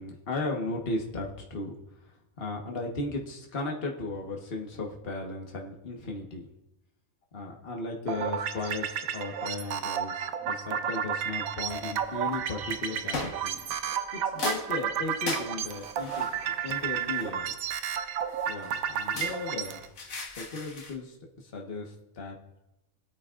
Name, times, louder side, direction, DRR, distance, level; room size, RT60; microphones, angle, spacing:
voice 1, 0.0-1.7 2.4-6.5 7.3-13.6 14.1-16.3 16.6-17.5 18.4-19.8 20.3-22.6, left 2 dB, 45° left, 0 dB, 1.5 m, -36 dB
sound 1, 8.1-19.9, right 8 dB, 85° right, 1.2 m, -32 dB
sound 2, 12.0-12.4 13.1-14.1 14.4-17.7 18.4-21.0, left 3 dB, 75° left, 1.8 m, -38 dB
25.0 x 8.3 x 2.5 m, 0.93 s
omnidirectional pair, 1.4 m